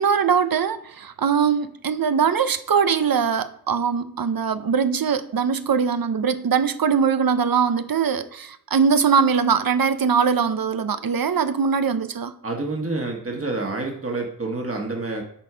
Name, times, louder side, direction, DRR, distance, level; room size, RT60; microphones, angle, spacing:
voice 1, 0.0-12.3, right 6 dB, 75° right, 0.7 m, -21 dB
voice 2, 12.4-15.2, right 3 dB, 40° right, 1.5 m, -28 dB
8.8 x 4.3 x 4.9 m
cardioid pair, 40°, 36 cm